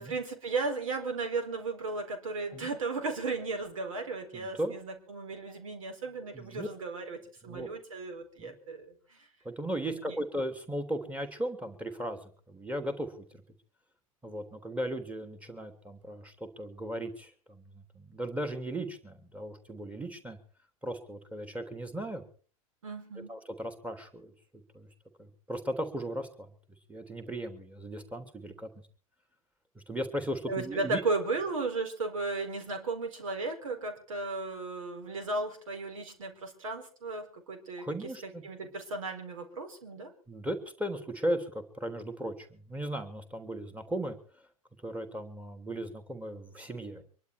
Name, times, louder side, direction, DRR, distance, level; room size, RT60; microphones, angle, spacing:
voice 1, 0.0-9.2 9.9-10.2 22.8-23.3 30.5-40.1, right 3 dB, 65° right, 7 dB, 4.4 m, -35 dB
voice 2, 4.3-4.7 6.3-6.7 7.5-7.7 8.4-8.5 9.4-13.2 14.2-20.4 20.8-22.2 23.3-24.3 24.7-24.9 25.2-26.5 26.9-28.7 29.7-31.0 37.8-38.7 40.3-44.2 44.8-47.0, right 1 dB, 5° right, 7 dB, 3.1 m, -37 dB
25.0 x 11.5 x 4.7 m, 0.42 s
figure-of-eight pair, 90°, 18 cm